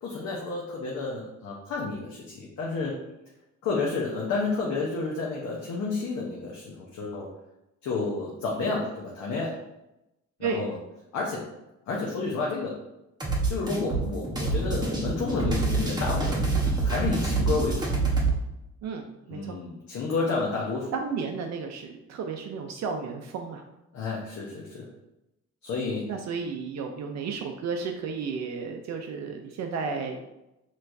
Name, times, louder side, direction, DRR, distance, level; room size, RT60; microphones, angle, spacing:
voice 1, 0.0-3.0 3.6-7.3 7.8-9.5 10.4-10.7 11.1-11.4 11.9-12.7 13.5-16.6 16.8-17.9 19.3-20.9 23.9-24.9 25.6-26.1, left 3 dB, 65° left, -3 dB, 0.8 m, -30 dB
sound 1, 13.2-18.4, right 3 dB, 15° right, 1.1 m, -26 dB
voice 2, 18.8-19.6 20.9-23.6 26.1-30.2, right 5 dB, 65° right, 3 dB, 0.5 m, -33 dB
4.4 x 3.1 x 2.6 m, 0.91 s
cardioid pair, 90°, 30 cm